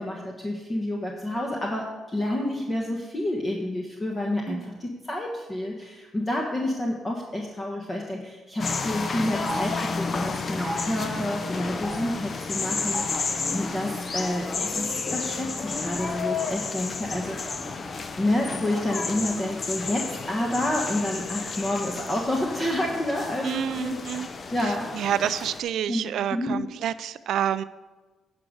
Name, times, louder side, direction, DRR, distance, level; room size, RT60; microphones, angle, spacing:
voice 1, 0.0-17.7 18.2-24.0 24.5-24.8 25.2-25.4 25.9-26.6, left 1 dB, 25° left, 0 dB, 1.3 m, -29 dB
sound 1, 8.6-25.6, left 4 dB, 40° left, 0.7 m, -32 dB
sound 2, 9.5-9.8 10.6-10.9 11.8-12.1 12.9-13.3 14.2-14.5 15.9-16.4 17.2-17.9, right 1 dB, ahead, 2.1 m, -37 dB
voice 2, 23.4-24.3 24.9-27.6, right 10 dB, 75° right, 15 dB, 0.4 m, -28 dB
9.8 x 5.2 x 6.3 m, 1.2 s
cardioid pair, 90°, 0 cm